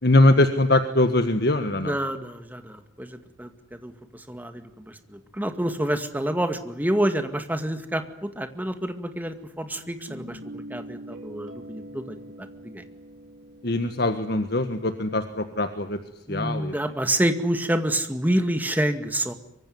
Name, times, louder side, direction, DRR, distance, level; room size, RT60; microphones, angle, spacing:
voice 1, 0.0-1.9 13.6-16.0 16.3-16.7, left 2 dB, 55° left, 9 dB, 1.6 m, -22 dB
voice 2, 1.8-12.5 12.7-12.8 16.3-19.3, right 1 dB, 10° right, 8 dB, 2.1 m, -28 dB
Guitar, 9.8-14.8, right 1 dB, 85° right, 3.5 m, -43 dB
25.0 x 24.5 x 9.5 m, 0.72 s
head